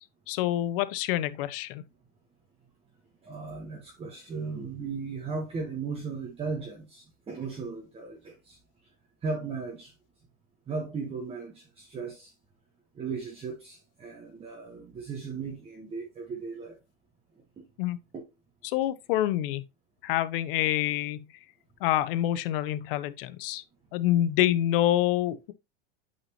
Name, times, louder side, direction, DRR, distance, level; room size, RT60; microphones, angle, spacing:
voice 1, 0.3-1.8 17.8-18.0 18.6-19.6 20.0-21.3 21.8-23.6 23.9-25.5, left 13 dB, 65° left, 0.7 m, -27 dB
voice 2, 3.2-8.6 9.2-9.9 10.7-12.3 12.9-16.7 17.6-17.7 18.1-18.2, right 4 dB, 20° right, 1.2 m, -36 dB
8.6 x 4.3 x 2.9 m
supercardioid pair, 145°, 29 cm